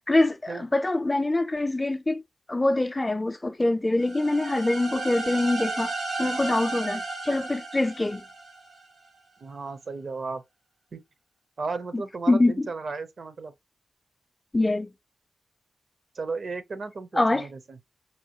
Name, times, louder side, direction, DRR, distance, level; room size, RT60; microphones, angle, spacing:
voice 1, 0.1-2.2 2.5-5.9 6.2-8.2 11.9-12.0 12.3-12.7 14.5-14.9 17.1-17.5, left 2 dB, 25° left, 0.3 m, -24 dB
sound 1, 4.0-8.8, right 3 dB, 90° right, 1.7 m, -34 dB
voice 2, 9.4-10.4 10.9-11.0 11.6-13.5 16.1-17.8, right 4 dB, 65° right, 0.6 m, -34 dB
5.3 x 2.2 x 2.9 m
cardioid pair, 65°, 0 cm